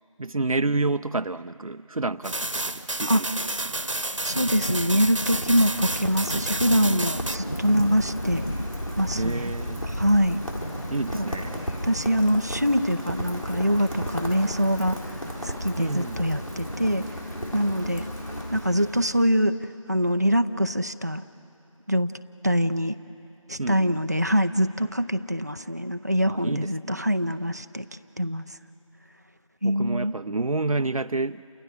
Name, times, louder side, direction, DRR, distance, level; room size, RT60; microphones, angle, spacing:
voice 1, 0.2-3.3 3.7-4.0 9.1-9.8 10.9-11.6 15.8-16.2 23.6-24.0 26.3-27.0 29.6-31.4, right 3 dB, 85° right, 10 dB, 0.6 m, -29 dB
sound 1, 2.2-19.3, equal, 30° left, 0.6 m, -39 dB
sound 2, 2.2-7.4, right 2 dB, 65° right, 1.1 m, -30 dB
voice 2, 4.2-8.4 9.0-9.5 10.0-10.4 11.1-11.2 11.9-15.1 15.4-17.0 17.5-18.1 18.5-19.6 19.9-21.2 21.9-22.1 22.4-23.0 23.5-27.8 28.2-28.5 29.6-30.1, equal, 30° right, 8 dB, 0.5 m, -24 dB
Rain, 4.4-19.2, equal, 85° left, 6.9 m, -34 dB
29.5 x 28.5 x 6.6 m, 2.9 s
figure-of-eight pair, 175°, 17 cm